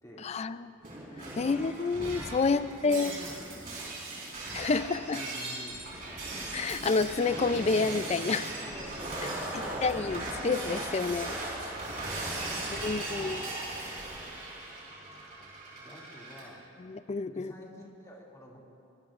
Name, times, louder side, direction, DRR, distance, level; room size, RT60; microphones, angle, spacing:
voice 1, 0.2-0.7 1.4-3.1 4.5-5.2 6.5-8.5 9.5-11.4 12.7-13.5 16.8-17.5, left 4 dB, 35° left, 14 dB, 0.4 m, -29 dB
Shatter, 0.8-16.4, right 2 dB, 45° right, 4.4 m, -38 dB
voice 2, 2.5-4.1 5.1-6.3 8.7-10.1 11.6-11.9 12.4-14.1 14.9-16.6 17.3-18.6, equal, 15° left, -4 dB, 2.4 m, -50 dB
23.5 x 22.5 x 2.5 m, 2.7 s
head